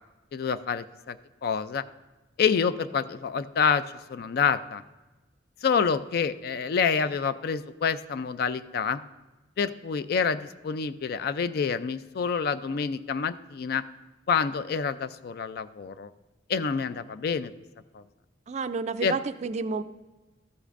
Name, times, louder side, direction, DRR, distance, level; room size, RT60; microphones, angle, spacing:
voice 1, 0.3-1.2 1.4-1.8 2.4-3.8 4.1-4.8 5.6-9.0 9.6-13.8 14.3-16.1 16.5-17.5 17.9-18.0 19.0-19.2, left 6 dB, 55° left, 13 dB, 0.4 m, -27 dB
voice 2, 18.5-19.8, right 4 dB, 40° right, 11 dB, 0.3 m, -30 dB
13.5 x 8.4 x 2.5 m, 1.2 s
head